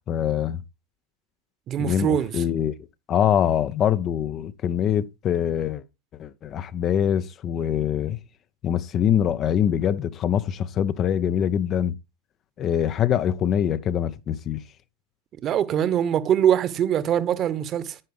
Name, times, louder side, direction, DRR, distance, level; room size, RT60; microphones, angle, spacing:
voice 1, 0.1-0.6 1.8-2.7 3.1-5.8 6.2-8.2 8.6-11.9 12.6-14.6, left 9 dB, 30° left, 0.6 m, -24 dB
voice 2, 1.7-2.4 15.4-18.0, right 10 dB, 30° right, 1.1 m, -23 dB
10.0 x 9.8 x 3.5 m
figure-of-eight pair, 90°, 0 cm